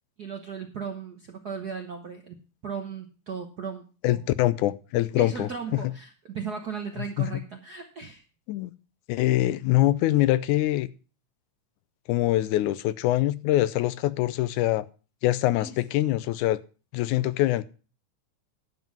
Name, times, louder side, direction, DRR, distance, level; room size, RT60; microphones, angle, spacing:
voice 1, 0.2-4.2 5.2-8.2 15.5-15.8, right 6 dB, 65° right, 3 dB, 1.0 m, -37 dB
voice 2, 4.0-5.5 7.2-7.3 8.5-8.7 9.1-10.9 12.1-14.9 15.2-16.6 16.9-17.6, left 15 dB, 90° left, 16 dB, 2.1 m, -24 dB
11.0 x 7.6 x 6.0 m, 0.35 s
omnidirectional pair, 3.4 m